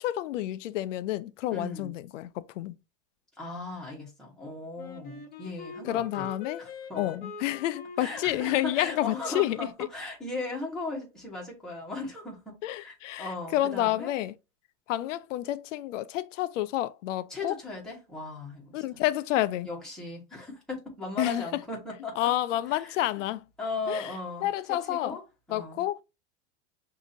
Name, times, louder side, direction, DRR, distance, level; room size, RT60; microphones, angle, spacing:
voice 1, 0.0-2.7 5.8-6.6 7.0-9.7 12.6-14.3 14.9-17.5 18.7-19.7 21.2-21.4 22.2-23.4 23.9-24.1 24.4-25.2 25.5-26.0, left 14 dB, 90° left, 0.5 m, -29 dB
voice 2, 1.5-1.9 3.4-6.3 6.6-7.1 8.0-14.1 17.3-19.0 19.6-22.3 22.7-23.0 23.6-24.5 24.9-25.2 25.5-25.8, left 3 dB, ahead, 1.4 m, -37 dB
Wind instrument woodwind instrument, 4.8-9.5, left 5 dB, 25° left, 0.9 m, -44 dB
6.0 x 2.8 x 2.7 m
supercardioid pair, 160°, 36 cm